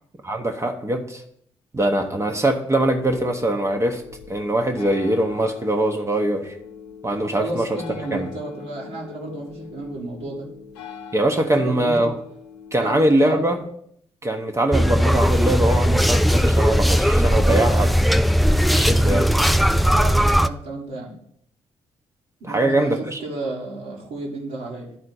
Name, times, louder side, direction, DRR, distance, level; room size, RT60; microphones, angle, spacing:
voice 1, 0.2-1.2 1.7-4.0 4.3-6.5 7.0-7.7 8.1-8.3 11.1-12.1 12.7-13.6 14.2-17.9 18.7-19.3 22.5-23.2, right 1 dB, 20° right, 4 dB, 0.9 m, -22 dB
sound 1, 2.9-13.5, left 7 dB, 80° left, 0.7 m, -41 dB
voice 2, 7.2-10.5 11.4-12.1 12.8-13.5 17.4-17.9 19.9-21.1 22.4-24.9, right 2 dB, 70° right, -5 dB, 1.6 m, -32 dB
sound 2, 14.7-20.5, equal, ahead, 0.3 m, -18 dB
11.5 x 4.3 x 4.0 m, 0.67 s
figure-of-eight pair, 40°, 14 cm